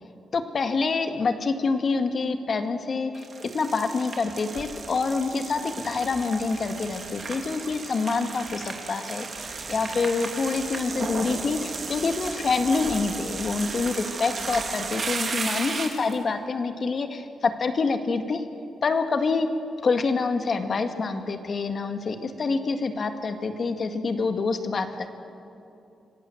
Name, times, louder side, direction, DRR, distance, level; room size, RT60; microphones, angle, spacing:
voice 1, 0.3-3.3 3.5-18.4 18.8-19.5 19.8-25.1, left 4 dB, 50° left, 7 dB, 1.8 m, -26 dB
sound 1, 3.1-16.1, right 4 dB, 50° right, 2.9 m, -34 dB
26.0 x 16.5 x 7.9 m, 2.8 s
cardioid pair, 80°, 0 cm